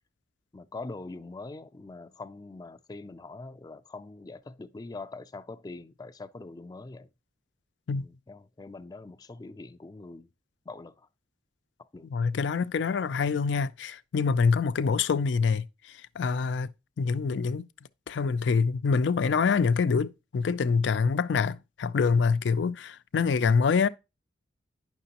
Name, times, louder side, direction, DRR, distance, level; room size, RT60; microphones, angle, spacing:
voice 1, 0.5-7.1 7.9-10.3 10.7-11.1 11.8-12.1, left 3 dB, 20° left, 0.4 m, -43 dB
voice 2, 12.1-16.7 17.0-17.7 18.1-23.9, left 5 dB, 85° left, 0.4 m, -25 dB
10.0 x 5.9 x 2.9 m
head